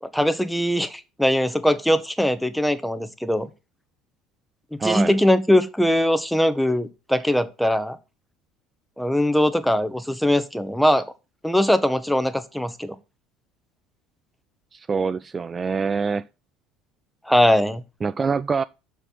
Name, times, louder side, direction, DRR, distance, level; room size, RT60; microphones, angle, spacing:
voice 1, 0.0-3.5 4.7-8.0 9.0-11.0 11.4-12.9 17.3-17.8, left 1 dB, ahead, 1.0 m, -21 dB
voice 2, 4.8-5.2 14.7-16.3 18.0-18.6, right 5 dB, 30° right, 0.3 m, -25 dB
6.6 x 4.6 x 5.7 m
hypercardioid pair, 65°, 0 cm